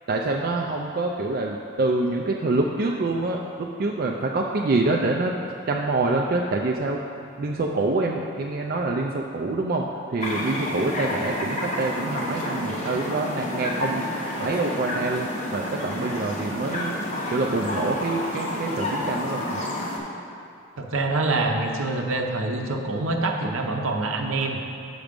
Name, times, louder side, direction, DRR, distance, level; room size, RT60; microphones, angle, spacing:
voice 1, 0.1-5.3 5.7-7.0 7.4-14.1 14.4-16.9 17.3-19.6, right 2 dB, 45° right, 0 dB, 0.4 m, -26 dB
sound 1, 10.2-20.0, left 1 dB, 30° left, 1.1 m, -30 dB
voice 2, 20.8-24.6, right 2 dB, 75° right, 3 dB, 0.7 m, -25 dB
6.3 x 5.9 x 5.1 m, 2.6 s
head